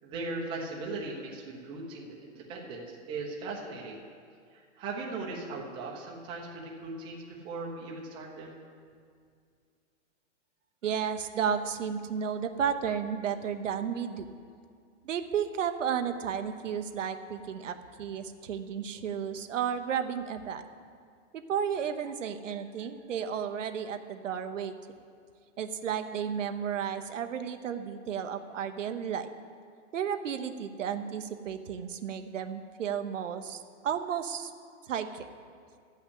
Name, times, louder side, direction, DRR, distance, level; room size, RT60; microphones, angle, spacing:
voice 1, 0.0-4.0 4.5-8.6, right 3 dB, 15° right, -2 dB, 1.0 m, -38 dB
voice 2, 10.8-14.3 15.0-20.6 21.3-24.7 25.6-29.3 29.9-34.5 34.9-35.3, right 8 dB, 85° right, 8 dB, 1.0 m, -33 dB
13.5 x 5.8 x 8.3 m, 2.2 s
hypercardioid pair, 170°, 37 cm